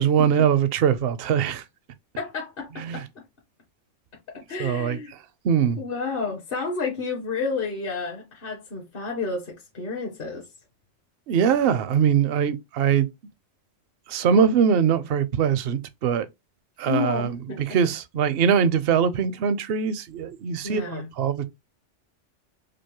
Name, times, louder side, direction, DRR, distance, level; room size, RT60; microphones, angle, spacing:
voice 1, 0.0-1.6 2.8-3.0 4.6-5.0 5.4-5.8 11.3-13.1 14.1-16.3 16.8-21.5, right 7 dB, 60° right, 0.7 m, -22 dB
voice 2, 2.2-3.2 4.3-5.1 5.8-10.5 16.9-17.6 20.6-21.1, left 4 dB, 50° left, 1.0 m, -31 dB
5.1 x 2.0 x 3.0 m
omnidirectional pair, 1.3 m